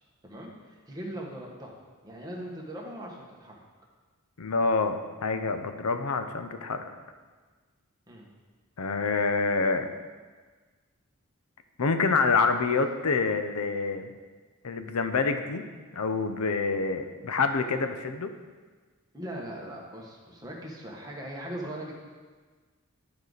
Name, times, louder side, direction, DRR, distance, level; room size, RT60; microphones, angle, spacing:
voice 1, 0.2-1.7 2.0-3.5 8.1-8.3 19.1-21.9, right 1 dB, 15° right, -3 dB, 1.3 m, -40 dB
voice 2, 4.4-6.9 8.8-9.9 11.8-14.1 14.6-15.6 15.9-18.3, left 4 dB, 80° left, 8 dB, 0.6 m, -27 dB
11.5 x 4.8 x 4.0 m, 1.4 s
head